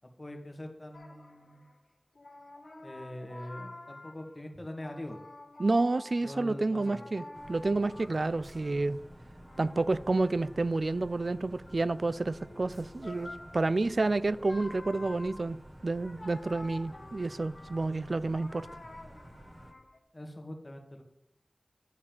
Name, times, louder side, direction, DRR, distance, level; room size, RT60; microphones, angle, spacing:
voice 1, 0.2-1.7 2.8-5.2 6.2-7.1 20.1-21.0, left 1 dB, 35° left, 1.7 m, -43 dB
sound 1, 0.9-1.8 2.1-4.4 4.7-9.0 9.4-20.0, left 2 dB, 75° left, 1.4 m, -50 dB
voice 2, 5.6-9.0 9.6-15.6 15.8-18.7, right 3 dB, 70° right, 0.3 m, -29 dB
sound 2, 7.3-19.7, equal, 25° right, 1.2 m, -51 dB
11.0 x 4.2 x 7.3 m
wide cardioid pair, 40°, 0 cm